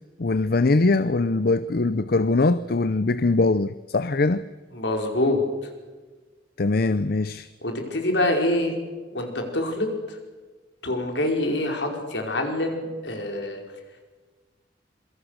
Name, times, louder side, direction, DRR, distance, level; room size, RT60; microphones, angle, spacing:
voice 1, 0.2-4.5 6.6-7.5, left 3 dB, 55° left, 14 dB, 0.6 m, -22 dB
voice 2, 4.8-5.4 7.6-8.7 9.1-9.9 10.8-13.6, left 1 dB, 75° left, 3 dB, 5.0 m, -25 dB
26.5 x 23.5 x 6.6 m, 1.3 s
head